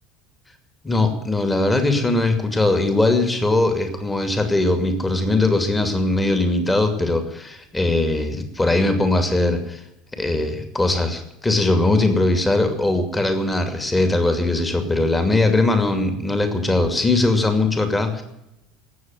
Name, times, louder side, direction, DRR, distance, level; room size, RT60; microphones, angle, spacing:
voice 1, 0.8-9.8 10.2-18.2, left 2 dB, 15° left, 6 dB, 2.5 m, -20 dB
17.5 x 7.2 x 9.2 m, 0.88 s
hypercardioid pair, 75°, 0 cm